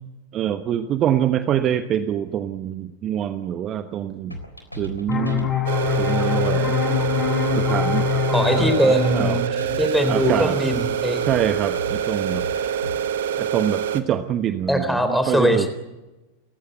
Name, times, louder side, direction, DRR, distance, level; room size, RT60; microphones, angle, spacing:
voice 1, 0.3-4.4 4.8-5.5 6.0-6.8 7.5-8.1 8.6-9.4 10.1-10.6 11.2-12.5 13.4-15.7, right 10 dB, 30° right, 10 dB, 1.1 m, -25 dB
sound 1, 4.3-13.0, equal, 90° left, 3.7 m, -35 dB
sound 2, 5.1-10.5, left 9 dB, 25° left, 6.7 m, -25 dB
sound 3, 5.7-14.0, right 9 dB, 60° right, 1.4 m, -26 dB
voice 2, 8.3-9.4 9.8-11.2 14.7-15.7, equal, ahead, 7 dB, 4.0 m, -21 dB
29.5 x 15.5 x 8.0 m, 1.1 s
figure-of-eight pair, 90°, 0 cm